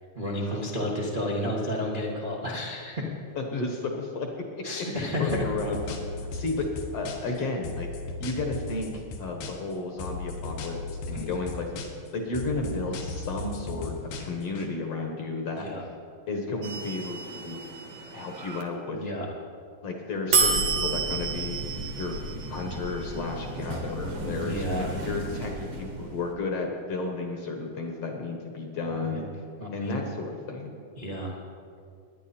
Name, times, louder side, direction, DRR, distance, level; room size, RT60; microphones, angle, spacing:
voice 1, 0.1-3.0 4.6-5.4 11.1-11.4 15.5-15.8 18.9-19.3 24.2-25.0 28.9-29.2 29.6-30.0 31.0-31.4, left 1 dB, 70° right, -5 dB, 0.4 m, -32 dB
voice 2, 3.4-4.3 5.0-6.0 6.3-7.9 8.2-11.8 12.1-15.7 16.3-17.2 17.4-17.6 18.1-19.0 19.8-21.6 22.0-22.2 22.5-29.3 29.7-30.7, left 3 dB, 60° left, 2 dB, 1.8 m, -32 dB
sound 1, 5.3-7.4 7.6-9.7 10.0-12.1 12.3-14.7, left 3 dB, 85° left, 3.0 m, -36 dB
sound 2, 16.6-18.6 20.3-26.3, right 4 dB, 55° right, 1.8 m, -31 dB
20.5 x 9.7 x 4.3 m, 2.3 s
omnidirectional pair, 4.0 m